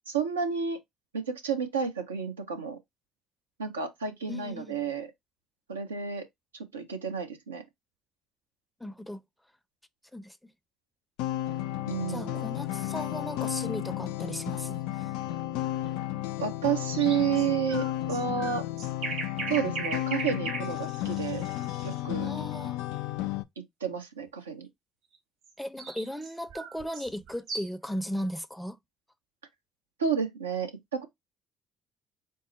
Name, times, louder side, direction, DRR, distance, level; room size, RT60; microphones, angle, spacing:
voice 1, 0.1-0.8 1.1-2.8 3.6-5.1 5.7-6.2 6.5-7.6 11.9-12.4 16.4-18.6 19.5-21.5 21.8-22.3 23.8-24.7 30.0-31.0, right 7 dB, 90° right, 0.7 m, -31 dB
voice 2, 4.3-4.8 8.8-9.2 10.1-10.4 12.1-15.1 22.2-22.8 25.6-28.8, equal, 5° left, 0.5 m, -36 dB
sound 1, 11.2-23.4, left 14 dB, 70° left, 0.3 m, -33 dB
sound 2, 16.9-22.0 25.4-27.9, right 4 dB, 65° right, 1.2 m, -38 dB
3.8 x 2.0 x 3.9 m
hypercardioid pair, 50°, 0 cm